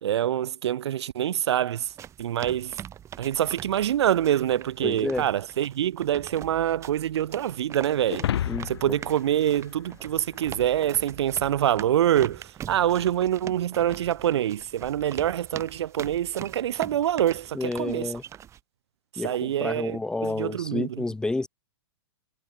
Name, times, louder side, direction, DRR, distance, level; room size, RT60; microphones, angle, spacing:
voice 1, 0.0-1.9 2.2-2.8 3.2-8.3 8.7-18.1 19.1-21.0, right 11 dB, 75° right, 0.5 m, -25 dB
sound 1, 1.8-18.6, right 10 dB, 20° right, 3.3 m, -43 dB
voice 2, 4.8-5.2 8.5-8.7 17.5-18.2 19.2-21.5, left 2 dB, 5° left, 0.8 m, -30 dB
sound 2, 8.1-10.6, left 11 dB, 75° left, 1.0 m, -32 dB
hypercardioid pair, 140°, 14 cm